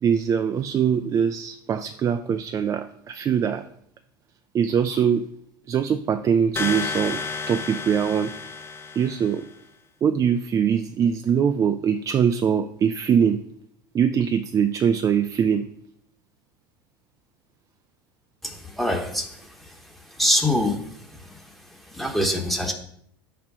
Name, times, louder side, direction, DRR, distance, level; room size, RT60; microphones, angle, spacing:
voice 1, 0.0-3.6 4.5-5.3 5.7-8.3 9.0-9.5 10.0-13.5 13.9-15.7, right 7 dB, 25° right, 8 dB, 0.3 m, -22 dB
sound 1, 6.6-9.5, left 4 dB, 20° left, 0.7 m, -31 dB
voice 2, 18.4-19.3 20.2-20.8 21.2-21.3 21.9-22.7, left 1 dB, ahead, 3 dB, 1.1 m, -23 dB
5.0 x 4.4 x 5.4 m, 0.67 s
hypercardioid pair, 80°, 12 cm